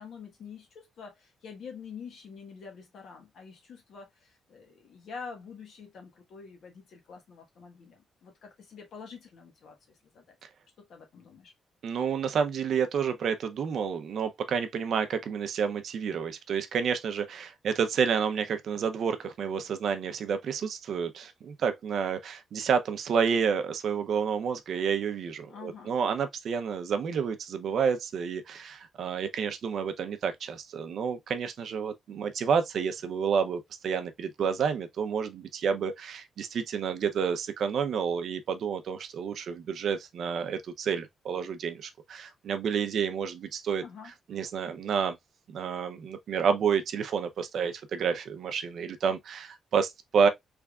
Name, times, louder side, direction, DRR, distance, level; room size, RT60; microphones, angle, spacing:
voice 1, 0.0-10.4 10.8-11.5 25.5-26.0 43.8-44.1, left 5 dB, 55° left, 1.4 m, -46 dB
voice 2, 11.8-43.8 44.3-45.2 45.5-50.3, right 6 dB, 55° right, 0.6 m, -29 dB
3.5 x 3.4 x 2.4 m
cardioid pair, 175°, 0 cm